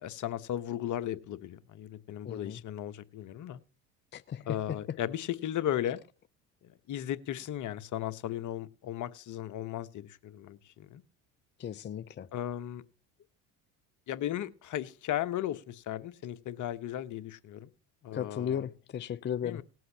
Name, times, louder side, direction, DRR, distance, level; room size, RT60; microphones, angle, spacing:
voice 1, 0.0-3.6 4.5-6.0 6.6-11.0 12.3-12.8 14.1-17.7 18.0-18.7 19.4-19.6, left 11 dB, 50° left, 1.2 m, -36 dB
voice 2, 2.3-2.6 4.1-4.4 11.6-12.3 18.1-19.6, left 9 dB, 30° left, 0.6 m, -35 dB
19.5 x 7.8 x 2.8 m
hypercardioid pair, 75°, 37 cm